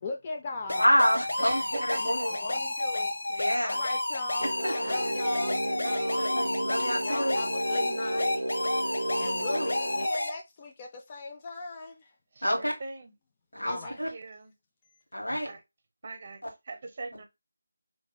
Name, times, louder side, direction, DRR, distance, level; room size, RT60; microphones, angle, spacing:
voice 1, 0.0-0.9 2.3-3.2 3.6-6.3 7.0-12.1 13.6-14.0 15.3-15.4, left 3 dB, 25° left, 0.4 m, -39 dB
sound 1, 0.7-10.3, left 2 dB, 65° left, 0.7 m, -31 dB
voice 2, 0.8-2.4 3.3-3.8 4.6-4.7 6.3-7.4 9.2-9.7 12.4-12.7 13.5-14.1 15.1-15.5, equal, 90° left, 1.2 m, -28 dB
voice 3, 1.4-2.6 4.8-5.1 5.8-6.4 6.8-6.9 12.3-13.1 13.8-14.5 15.4-15.6 16.0-17.2, right 3 dB, 40° right, 0.7 m, -41 dB
sound 2, 4.4-10.1, right 1 dB, 75° right, 0.5 m, -33 dB
2.6 x 2.3 x 3.9 m
figure-of-eight pair, 160°, 0 cm